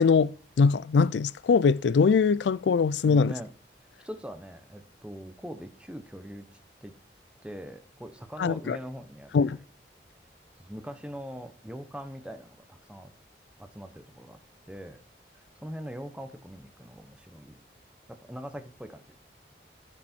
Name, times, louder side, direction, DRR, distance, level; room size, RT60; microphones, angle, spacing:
voice 1, 0.0-3.3 8.4-8.8 9.3-9.6, left 5 dB, 85° left, 0.4 m, -22 dB
voice 2, 3.1-3.5 3.8-6.9 7.4-9.6 10.5-13.1 13.6-14.4 14.7-15.0 15.3-17.6 18.1-19.2, equal, 5° right, 1.0 m, -42 dB
14.5 x 6.0 x 4.5 m
head